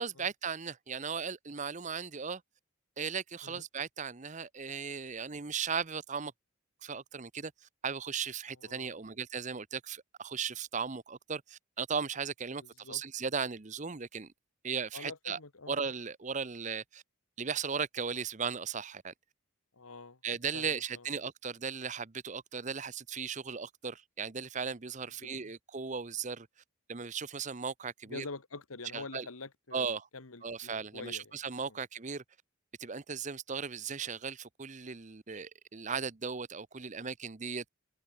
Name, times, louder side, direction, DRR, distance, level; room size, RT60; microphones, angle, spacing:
voice 1, 0.0-2.4 3.0-6.3 6.8-7.5 7.8-14.3 14.6-15.4 15.7-17.0 17.4-19.1 20.2-26.5 26.9-28.3 28.9-29.3 29.7-30.1 30.4-32.2 32.8-37.6, right 6 dB, 35° right, 0.8 m, -37 dB
voice 2, 8.6-8.9 12.6-13.0 14.9-15.8 19.7-20.2 20.5-21.1 25.2-25.5 28.0-31.3 31.6-31.8, left 3 dB, 85° left, 1.9 m, -46 dB
open air
head